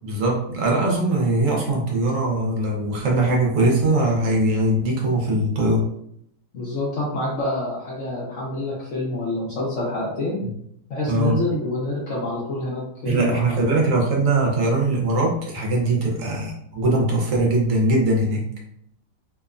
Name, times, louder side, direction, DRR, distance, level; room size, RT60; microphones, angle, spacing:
voice 1, 0.0-5.8 10.4-10.5 11.1-11.4 13.1-18.5, right 2 dB, 65° right, -1 dB, 0.8 m, -21 dB
voice 2, 6.5-10.4 10.9-13.8, left 2 dB, 65° left, -5 dB, 0.7 m, -27 dB
2.8 x 2.1 x 2.4 m, 0.71 s
omnidirectional pair, 1.8 m